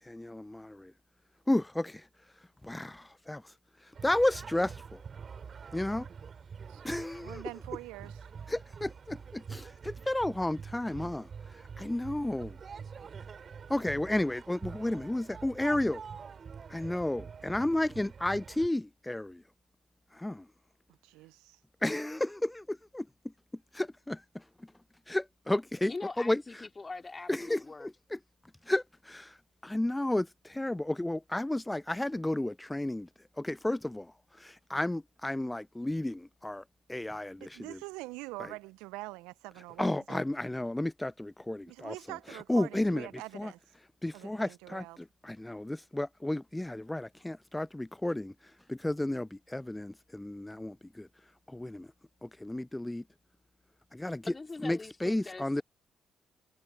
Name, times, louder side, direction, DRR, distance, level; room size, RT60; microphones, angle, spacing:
voice 1, 0.1-0.9 1.5-2.0 2.6-3.4 4.0-5.0 5.7-6.1 6.8-7.4 8.5-11.3 11.8-12.6 13.7-16.0 16.7-19.4 20.2-20.4 21.8-23.0 23.7-24.2 25.1-25.9 26.2-26.4 27.3-28.2 28.7-29.3 29.6-33.1 33.4-34.1 34.4-36.6 36.9-37.8 39.8-41.9 42.5-43.1 43.3-43.5 44.0-44.8 45.2-48.3 48.7-51.1 51.5-51.9 52.2-53.0 53.9-54.3 54.6-55.6, left 1 dB, 10° left, 0.5 m, -32 dB
sound 1, 3.9-18.7, right 6 dB, 50° right, 3.2 m, -46 dB
voice 2, 6.7-8.3 21.0-21.6 37.4-40.2 41.7-43.6 44.1-45.0, right 22 dB, 75° right, 0.6 m, -45 dB
voice 3, 25.9-27.9 54.3-55.6, left 3 dB, 30° left, 2.5 m, -42 dB
hypercardioid pair, 40°, 0 cm